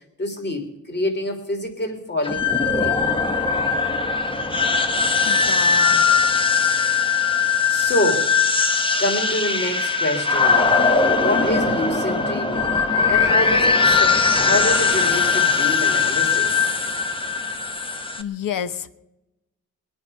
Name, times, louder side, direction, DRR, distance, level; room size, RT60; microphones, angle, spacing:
voice 1, 0.2-3.0 6.8-7.3 7.7-8.3 9.0-10.8 11.1-12.7 13.1-16.7, left 1 dB, 30° left, 4 dB, 3.2 m, -27 dB
sound 1, 2.2-18.2, left 5 dB, 15° left, 1.0 m, -20 dB
voice 2, 5.3-6.5 18.2-19.0, left 8 dB, 75° left, 13 dB, 0.9 m, -31 dB
21.5 x 9.7 x 5.5 m, 0.94 s
wide cardioid pair, 110°, 33 cm